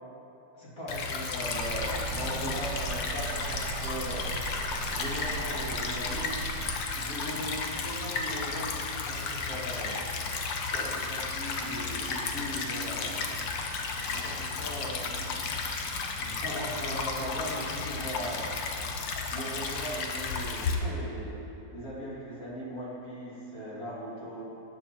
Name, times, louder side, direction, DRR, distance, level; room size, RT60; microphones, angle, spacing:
voice 1, 0.5-4.3 4.9-6.4 6.9-8.7 9.0-10.0 10.7-13.2 13.9-15.7 16.2-18.5 19.3-24.4, equal, 50° left, -7 dB, 3.4 m, -39 dB
Stream / Trickle dribble, 0.9-20.7, left 4 dB, 85° left, 1.6 m, -33 dB
sound 1, 1.6-6.8, right 6 dB, 70° right, 1.3 m, -39 dB
13.5 x 8.5 x 4.5 m, 2.8 s
omnidirectional pair, 2.0 m